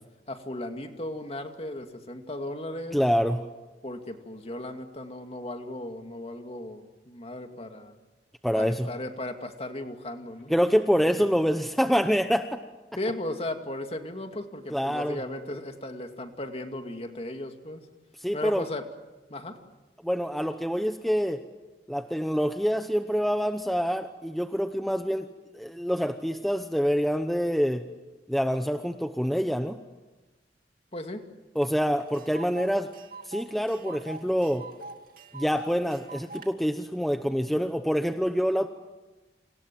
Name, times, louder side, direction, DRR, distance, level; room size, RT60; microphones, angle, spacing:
voice 1, 0.3-3.0 3.8-8.0 8.6-10.5 11.2-11.3 13.0-17.9 18.3-18.9 19.3-19.6 30.9-31.3, left 1 dB, 35° left, 5 dB, 2.4 m, -36 dB
voice 2, 2.9-3.4 8.4-8.9 10.5-12.6 14.7-15.2 18.2-18.6 20.0-21.5 21.9-25.3 25.5-27.8 28.3-29.8 31.6-32.9 33.2-34.7 35.3-38.7, equal, ahead, 7 dB, 0.9 m, -26 dB
Tick, 31.6-31.7 32.0-36.5, right 3 dB, 50° right, 2.4 m, -44 dB
29.5 x 26.5 x 7.6 m, 1.2 s
head